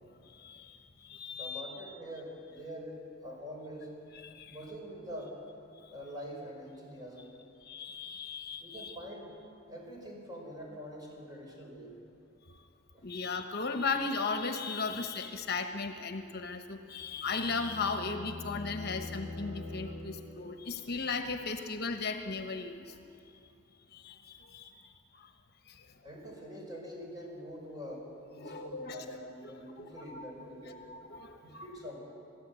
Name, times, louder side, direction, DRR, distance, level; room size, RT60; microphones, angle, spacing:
voice 1, 0.2-1.8 4.2-4.6 5.8-5.9 7.6-9.0 12.5-12.6 13.0-23.0 23.9-25.3 25.7-25.8 28.4-29.0 29.4-29.5 30.0-31.7, left 4 dB, 55° left, 6 dB, 1.1 m, -37 dB
voice 2, 1.3-3.9 4.4-5.4 5.9-7.3 8.6-9.3 9.7-11.9 12.9-13.0 26.0-30.8 31.4-32.0, equal, 20° right, -1 dB, 5.2 m, -45 dB
sound 1, 16.7-20.6, left 2 dB, 90° right, 3.8 m, -44 dB
23.0 x 14.5 x 8.2 m, 2.5 s
head